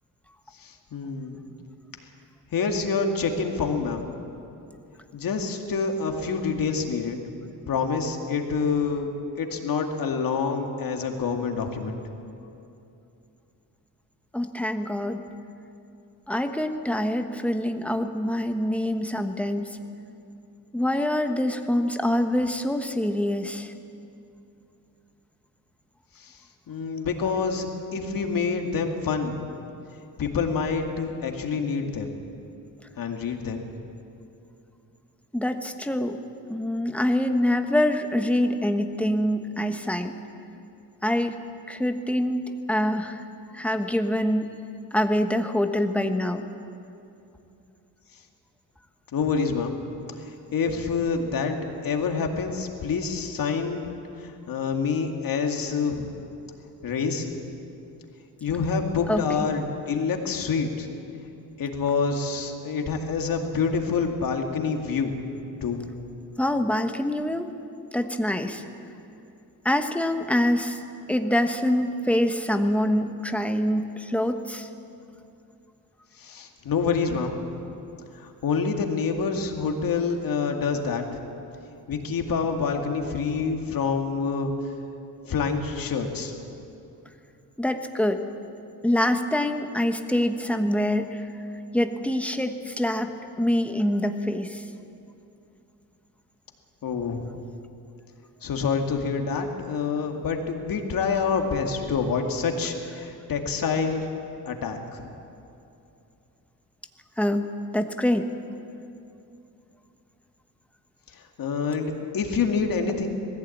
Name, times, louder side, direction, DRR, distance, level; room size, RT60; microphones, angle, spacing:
voice 1, 0.6-1.4 2.5-4.1 5.1-7.2 7.7-9.1 9.4-12.0 26.2-26.3 26.7-29.4 30.2-32.2 33.0-33.7 49.1-49.8 50.2-51.5 51.8-53.9 54.2-56.1 56.8-57.3 58.4-60.9 61.6-65.2 65.6-65.8 76.2-77.6 78.1-81.0 81.9-84.5 85.2-86.3 96.8-97.3 98.4-104.1 104.5-105.1 111.4-113.2, left 5 dB, 65° left, 3 dB, 2.3 m, -27 dB
voice 2, 14.3-15.2 16.3-19.7 20.7-23.7 35.3-36.2 36.5-40.1 41.0-41.4 41.7-43.2 43.5-44.6 44.9-46.4 59.1-59.2 66.4-67.5 67.9-68.6 69.6-70.8 71.1-74.7 87.6-88.3 88.8-91.2 91.7-93.1 93.4-94.6 107.2-107.5 107.7-108.4, left 1 dB, 5° left, 6 dB, 1.3 m, -25 dB
20.0 x 15.5 x 8.6 m, 2.7 s
cardioid pair, 95°, 37 cm